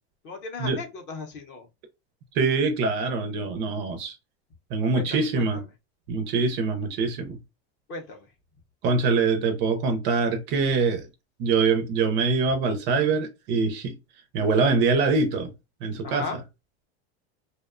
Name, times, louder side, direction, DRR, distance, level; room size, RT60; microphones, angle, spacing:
voice 1, 0.2-1.7 4.9-5.5 7.9-8.3 16.0-16.4, left 4 dB, 35° left, 0.6 m, -36 dB
voice 2, 2.3-4.2 4.7-5.6 6.1-7.4 8.8-11.1 11.4-14.0 14.3-15.5 15.8-16.3, right 4 dB, 35° right, 0.4 m, -24 dB
2.7 x 2.1 x 2.4 m
supercardioid pair, 145°, 33 cm